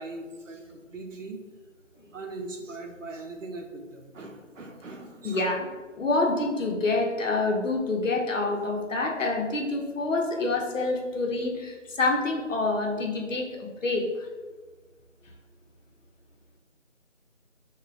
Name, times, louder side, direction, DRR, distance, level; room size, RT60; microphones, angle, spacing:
voice 1, 0.0-1.4 2.0-5.5, right 2 dB, 75° right, 2 dB, 0.6 m, -40 dB
voice 2, 5.2-5.7 5.9-14.3, left 2 dB, 85° left, 1 dB, 0.7 m, -27 dB
2.4 x 2.2 x 3.2 m, 1.3 s
figure-of-eight pair, 175°, 38 cm